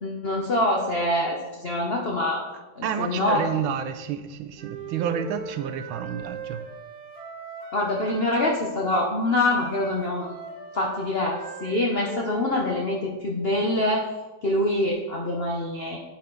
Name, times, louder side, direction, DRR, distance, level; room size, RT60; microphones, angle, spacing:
voice 1, 0.0-2.4 2.8-3.4 7.7-10.3 10.7-14.1 14.4-16.0, left 1 dB, 50° left, -1 dB, 0.7 m, -25 dB
voice 2, 2.8-6.6, right 8 dB, 90° right, 9 dB, 1.4 m, -30 dB
Wind instrument woodwind instrument, 4.6-8.4 9.2-12.9, right 4 dB, 55° right, 1.9 m, -40 dB
9.8 x 4.3 x 3.8 m, 1.1 s
omnidirectional pair, 2.2 m